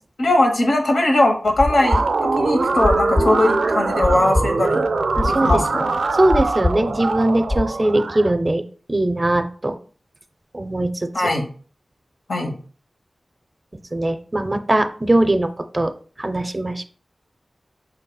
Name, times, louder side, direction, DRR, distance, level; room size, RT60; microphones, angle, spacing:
voice 1, 0.2-4.9 5.4-6.0 11.1-11.4 12.3-12.5, left 1 dB, 75° left, 3 dB, 1.0 m, -19 dB
sound 1, 1.5-7.7, left 2 dB, 30° left, 0.4 m, -23 dB
sound 2, 1.7-8.3, right 3 dB, 85° right, 0.4 m, -22 dB
voice 2, 5.2-5.5 6.2-8.6 8.9-9.8 10.5-10.9 13.9-15.9 16.2-16.8, right 1 dB, 30° right, 8 dB, 0.5 m, -20 dB
5.3 x 4.0 x 2.3 m, 0.41 s
wide cardioid pair, 85°, 0 cm